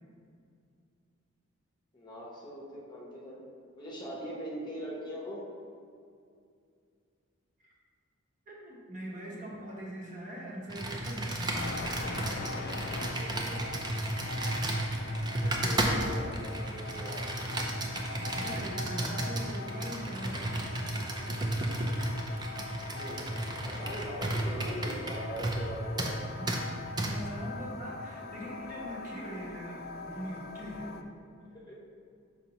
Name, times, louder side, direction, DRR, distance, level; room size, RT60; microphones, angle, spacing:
voice 1, 1.9-3.4 3.8-5.4 13.1-13.8 15.4-17.2 22.9-26.3 31.4-31.7, equal, 20° left, -4 dB, 0.8 m, -41 dB
voice 2, 8.5-11.6 15.7-16.1 18.1-21.1 27.0-31.0, equal, 35° right, -4 dB, 1.0 m, -42 dB
Computer keyboard, 10.7-25.7 26.0-26.2 26.5-26.6 27.0-27.1, right 1 dB, 20° right, 0.4 m, -33 dB
sound 1, 11.5-31.0, left 4 dB, 45° left, 0.3 m, -43 dB
6.6 x 5.0 x 2.9 m, 2.4 s
head